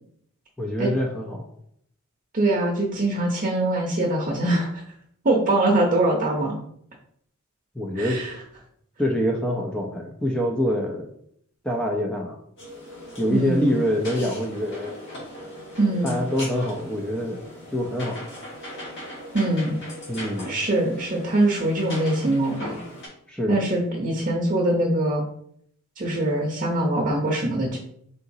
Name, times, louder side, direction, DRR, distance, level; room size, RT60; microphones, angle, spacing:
voice 1, 0.6-1.5 7.7-8.2 9.0-11.0 11.6-12.4 13.2-15.0 16.0-17.4 17.7-18.2 20.1-20.5 23.3-23.6, equal, 5° left, -1 dB, 0.4 m, -25 dB
voice 2, 2.3-4.7 5.2-6.6 8.0-8.3 13.3-13.7 15.8-16.2 19.3-19.8 20.5-22.8 23.5-25.2 26.0-27.8, right 1 dB, 35° right, -1 dB, 0.7 m, -23 dB
sound 1, 12.6-23.1, left 1 dB, 55° left, 1.5 m, -39 dB
3.9 x 3.9 x 2.7 m, 0.68 s
head